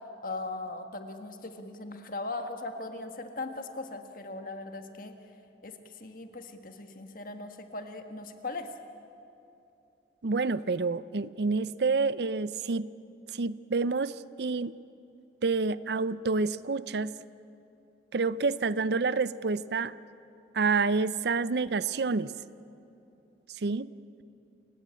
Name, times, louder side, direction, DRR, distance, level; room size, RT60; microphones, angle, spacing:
voice 1, 0.2-5.1 5.6-8.7, left 2 dB, 50° left, 6 dB, 1.6 m, -39 dB
voice 2, 10.2-12.9 13.3-14.8 15.4-17.1 18.1-19.9 20.5-22.3 23.6-23.9, right 4 dB, 65° right, 17 dB, 0.5 m, -28 dB
28.5 x 17.0 x 8.4 m, 2.8 s
head